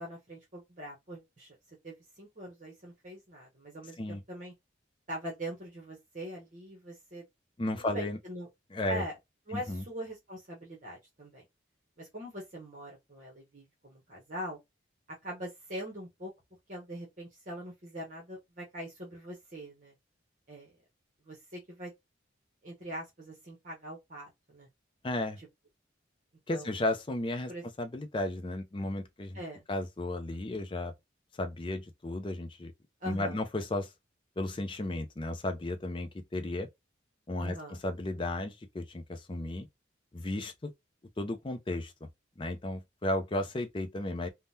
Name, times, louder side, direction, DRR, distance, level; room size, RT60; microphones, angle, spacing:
voice 1, 0.0-1.6 1.8-4.5 5.1-7.2 7.8-8.5 8.9-9.1 9.5-11.4 12.0-14.6 15.2-16.3 16.7-19.9 20.5-20.7 21.3-21.9 22.6-24.7 26.5-26.7 27.5-27.6 29.3-29.6 33.0-33.4 37.4-37.8, equal, 40° right, 0.9 m, -42 dB
voice 2, 7.6-8.2 8.7-9.0 9.5-9.8 25.0-25.4 26.5-27.5 27.8-29.4 29.7-30.9 31.4-32.7 33.0-33.9 34.4-36.7 37.3-39.7 40.1-40.7 41.2-41.9 42.4-44.3, left 1 dB, 25° left, 0.4 m, -34 dB
3.6 x 2.1 x 2.6 m
head